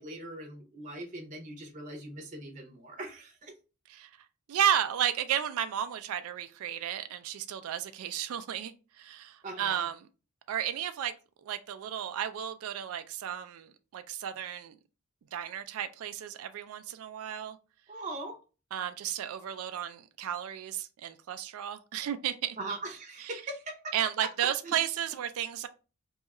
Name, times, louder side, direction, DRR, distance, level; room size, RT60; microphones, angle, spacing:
voice 1, 0.0-3.5 9.4-9.9 17.9-18.4 22.6-23.9 24.6-24.7, right 2 dB, 35° right, 0.7 m, -40 dB
voice 2, 4.5-9.9 10.5-11.1 11.4-14.8 15.3-17.6 18.7-22.6 23.3-23.4 23.9-25.7, right 10 dB, 80° right, 0.3 m, -33 dB
2.7 x 2.4 x 4.0 m
head